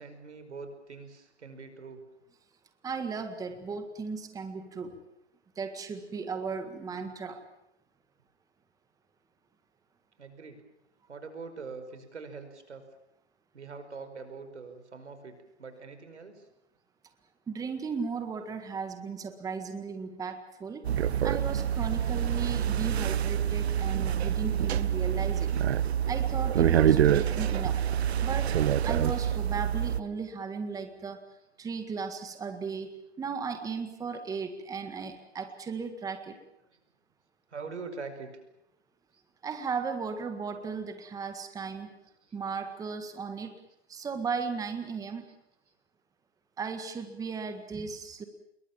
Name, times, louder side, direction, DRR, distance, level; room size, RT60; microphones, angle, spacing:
voice 1, 0.0-2.0 10.2-10.6 11.1-12.9 13.5-16.5 37.5-38.3 39.1-39.2 42.3-42.5 44.0-44.1 45.7-45.8, right 4 dB, 90° right, 8 dB, 5.5 m, -44 dB
voice 2, 2.8-5.0 5.6-7.4 17.5-20.8 21.2-25.5 26.1-27.8 28.2-28.5 28.8-31.2 31.6-36.4 39.4-41.9 42.3-43.5 43.9-45.3 46.6-48.2, right 5 dB, 10° right, 8 dB, 1.8 m, -36 dB
sound 1, 20.8-30.0, right 9 dB, 70° right, 1.1 m, -26 dB
27.0 x 22.0 x 7.3 m, 0.81 s
hypercardioid pair, 140°, 33 cm